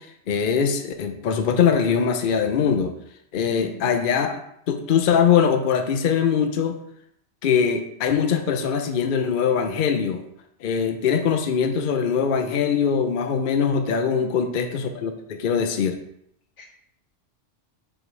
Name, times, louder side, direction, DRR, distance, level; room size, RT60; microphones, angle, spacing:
voice 1, 0.3-2.9 3.3-4.4 4.7-6.8 7.4-10.2 10.6-16.0, left 7 dB, 55° left, 6 dB, 0.6 m, -22 dB
voice 2, 3.5-3.9 14.2-14.5 16.6-16.7, left 6 dB, 70° left, 0 dB, 1.5 m, -39 dB
6.0 x 3.1 x 5.2 m, 0.72 s
omnidirectional pair, 1.3 m